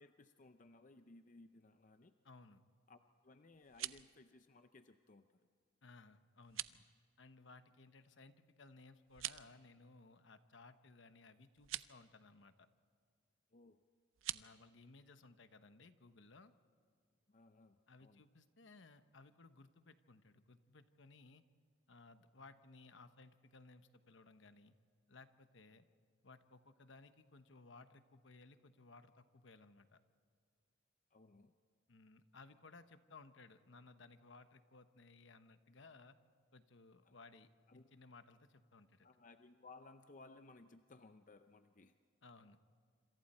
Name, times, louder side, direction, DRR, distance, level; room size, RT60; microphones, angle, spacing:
voice 1, 0.0-2.1 2.9-5.5 13.5-13.8 14.3-14.5 17.3-18.2 25.7-25.8 31.1-31.5 37.0-37.2 37.7-37.9 39.0-42.0, left 3 dB, 40° left, 8 dB, 0.6 m, -61 dB
voice 2, 2.2-2.6 5.8-6.8 7.2-12.7 14.3-16.5 17.9-21.4 21.9-24.7 25.1-25.9 26.2-30.0 31.9-36.2 36.5-39.1 42.2-42.6, left 3 dB, 65° left, 10 dB, 1.0 m, -61 dB
sound 1, 3.5-4.1 6.4-6.8 9.1-9.5 11.6-11.9 14.1-14.5, right 15 dB, 75° right, 0.5 m, -44 dB
27.0 x 26.5 x 4.3 m, 2.1 s
head